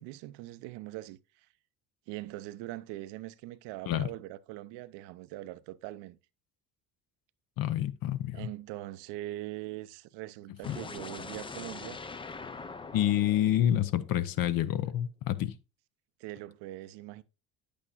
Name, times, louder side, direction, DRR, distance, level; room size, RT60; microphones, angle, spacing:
voice 1, 0.0-1.5 2.1-6.2 8.3-12.0 16.2-17.2, right 16 dB, 70° right, 0.6 m, -42 dB
voice 2, 7.6-8.5 10.7-10.8 12.9-15.6, left 11 dB, 55° left, 0.7 m, -28 dB
sound 1, 10.6-14.6, left 4 dB, 15° left, 0.4 m, -43 dB
8.7 x 8.5 x 2.4 m
hypercardioid pair, 70°, 43 cm